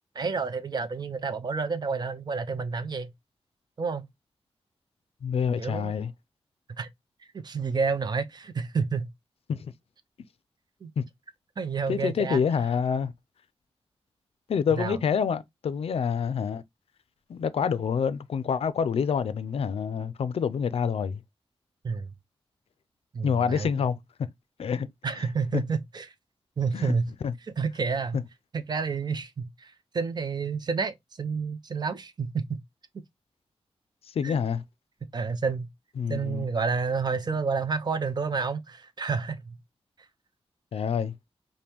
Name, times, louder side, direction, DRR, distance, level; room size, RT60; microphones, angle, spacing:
voice 1, 0.2-3.1 3.8-4.1 5.6-5.9 6.7-6.9 7.3-9.1 10.8-10.9 11.6-12.4 14.8-15.0 21.8-22.1 23.1-23.9 25.0-26.1 26.6-27.1 27.6-28.2 28.5-32.4 34.2-34.4 35.1-35.7 36.1-39.6, right 5 dB, 40° right, 0.5 m, -29 dB
voice 2, 5.2-6.1 9.5-9.7 11.0-11.1 11.9-13.1 14.5-16.6 17.3-21.2 23.2-24.0 24.6-24.9 25.5-25.6 26.7-27.0 27.2-27.3 28.1-28.2 34.1-34.6 36.0-36.5 40.7-41.2, left 7 dB, 65° left, 0.4 m, -27 dB
5.2 x 2.2 x 2.9 m
wide cardioid pair, 120°, 11 cm